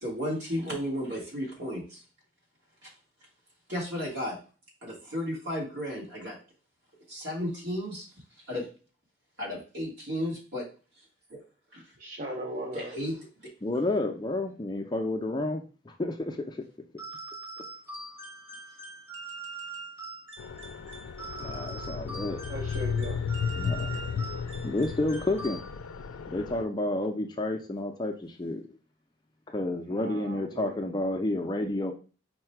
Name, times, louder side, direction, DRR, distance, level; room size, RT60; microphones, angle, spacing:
voice 1, 0.0-2.0 2.8-2.9 3.7-4.4 4.8-6.4 7.1-8.1 8.5-8.7 9.4-10.7 11.3-11.4 11.7-11.8 12.7-13.3, equal, 65° right, -2 dB, 1.7 m, -33 dB
voice 2, 12.0-12.9 22.5-23.2 30.0-30.8, right 1 dB, 40° right, -1 dB, 0.6 m, -38 dB
voice 3, 13.6-16.6 21.4-22.4 23.6-24.2 24.6-25.6 26.3-28.6 29.5-31.9, left 2 dB, 20° left, 3 dB, 0.4 m, -30 dB
sound 1, 17.0-26.0, right 3 dB, 10° right, 0.8 m, -43 dB
sound 2, 20.4-26.6, left 6 dB, 90° left, 0.4 m, -34 dB
4.7 x 2.2 x 4.4 m, 0.37 s
head